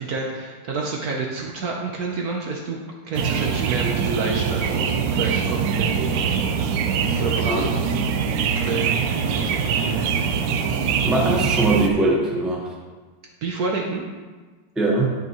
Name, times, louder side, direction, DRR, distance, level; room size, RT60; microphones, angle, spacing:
voice 1, 0.0-2.8 3.0-6.3 7.2-8.0 8.5-10.0 13.4-14.1, right 4 dB, 60° right, 0 dB, 1.1 m, -29 dB
sound 1, 3.1-11.9, right 6 dB, 80° right, 1.3 m, -23 dB
voice 2, 11.0-12.7 14.8-15.1, right 2 dB, ahead, -2 dB, 0.7 m, -21 dB
11.0 x 5.8 x 3.0 m, 1.4 s
omnidirectional pair, 2.1 m